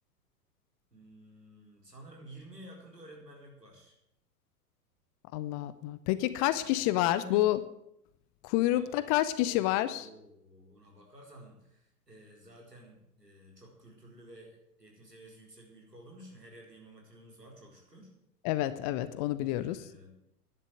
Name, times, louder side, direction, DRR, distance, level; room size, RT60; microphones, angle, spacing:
voice 1, 0.9-3.9 6.6-7.5 8.7-9.1 9.4-18.1 19.4-20.1, equal, 85° right, 0 dB, 4.4 m, -52 dB
voice 2, 5.3-7.6 8.4-10.1 18.4-19.9, left 15 dB, 25° left, 14 dB, 0.5 m, -28 dB
11.0 x 10.5 x 7.9 m, 0.78 s
figure-of-eight pair, 95°, 47 cm